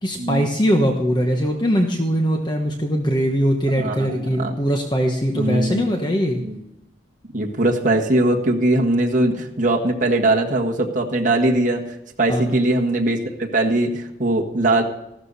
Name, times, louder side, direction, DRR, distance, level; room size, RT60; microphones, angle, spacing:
voice 1, 0.0-6.4 12.3-12.6, equal, 25° left, 2 dB, 1.1 m, -21 dB
voice 2, 3.7-4.5 5.3-5.9 6.4-6.6 7.3-11.8 12.2-14.8, right 2 dB, 45° right, 0 dB, 1.7 m, -20 dB
15.0 x 12.5 x 4.2 m, 0.87 s
head